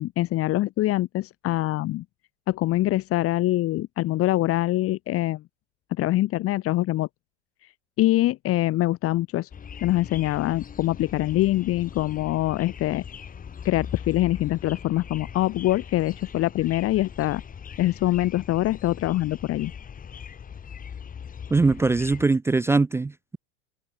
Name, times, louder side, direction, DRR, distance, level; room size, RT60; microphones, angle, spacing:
voice 1, 0.0-2.0 2.5-5.4 6.0-7.1 8.0-9.5 9.8-13.0 13.6-17.4 17.8-19.7, left 16 dB, 45° left, 2.4 m, -24 dB
sound 1, 9.5-22.3, left 7 dB, 25° left, 3.7 m, -40 dB
voice 2, 21.5-23.4, right 3 dB, 10° right, 0.5 m, -22 dB
hypercardioid pair, 105°, 33 cm